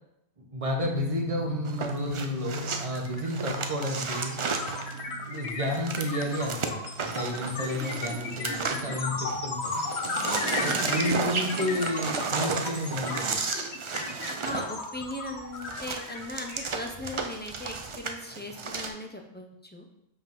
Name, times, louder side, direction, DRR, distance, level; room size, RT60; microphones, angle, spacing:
voice 1, 0.4-4.4 5.3-6.8 7.1-9.7 10.6-13.4, left 1 dB, 30° right, 1 dB, 1.0 m, -31 dB
sound 1, 0.8-13.7, right 3 dB, 70° right, 1.1 m, -41 dB
sound 2, 1.6-9.4 9.6-18.9, right 4 dB, 55° right, 0.3 m, -33 dB
sound 3, 2.5-2.6 2.9-17.3, left 3 dB, 70° left, 1.1 m, -35 dB
voice 2, 10.2-11.2 14.4-19.8, left 1 dB, 15° left, 2 dB, 0.4 m, -39 dB
5.2 x 3.7 x 5.3 m, 0.82 s
omnidirectional pair, 1.2 m